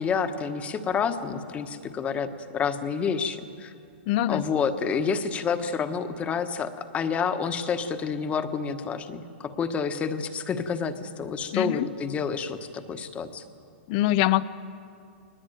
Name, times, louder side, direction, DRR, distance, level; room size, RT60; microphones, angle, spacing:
voice 1, 0.0-3.7 4.3-13.4, left 6 dB, 20° left, 9 dB, 1.2 m, -29 dB
voice 2, 4.1-4.4 11.5-11.9 13.9-14.4, left 15 dB, 45° left, 16 dB, 0.6 m, -23 dB
22.0 x 20.0 x 9.1 m, 2.6 s
hypercardioid pair, 140°, 6 cm